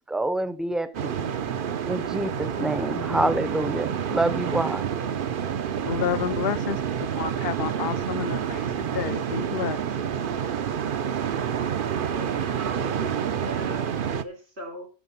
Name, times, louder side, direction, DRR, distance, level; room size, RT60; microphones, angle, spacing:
voice 1, 0.1-1.2 1.9-4.8, right 1 dB, ahead, 0.6 m, -27 dB
sound 1, 0.9-14.2, right 8 dB, 60° right, 0.8 m, -28 dB
voice 2, 5.8-9.8, left 9 dB, 65° left, 0.9 m, -30 dB
voice 3, 7.2-7.6 11.8-14.9, right 1 dB, 85° right, 3.8 m, -40 dB
11.0 x 6.7 x 5.5 m
omnidirectional pair, 1.1 m